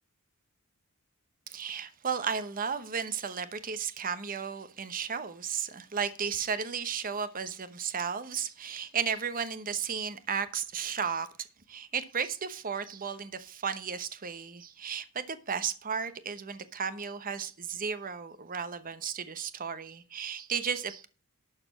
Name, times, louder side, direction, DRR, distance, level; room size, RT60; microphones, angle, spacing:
voice 1, 1.5-11.3 11.7-21.1, right 6 dB, 40° right, 1.0 m, -34 dB
12.0 x 4.3 x 7.2 m
head